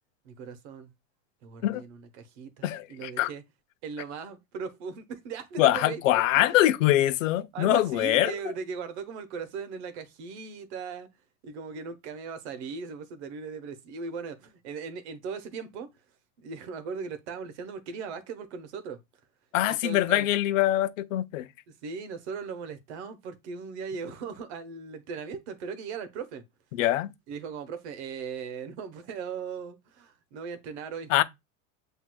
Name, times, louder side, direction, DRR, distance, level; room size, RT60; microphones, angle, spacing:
voice 1, 0.2-0.9 1.4-3.4 3.8-6.6 7.5-11.1 11.4-15.9 16.4-19.0 19.7-20.3 21.8-26.4 27.3-31.2, right 5 dB, 60° right, 1.0 m, -38 dB
voice 2, 2.6-3.3 5.6-8.3 19.5-21.5 26.7-27.1 31.1-31.2, left 14 dB, 75° left, 0.7 m, -24 dB
7.6 x 2.7 x 2.2 m
supercardioid pair, 165°, 39 cm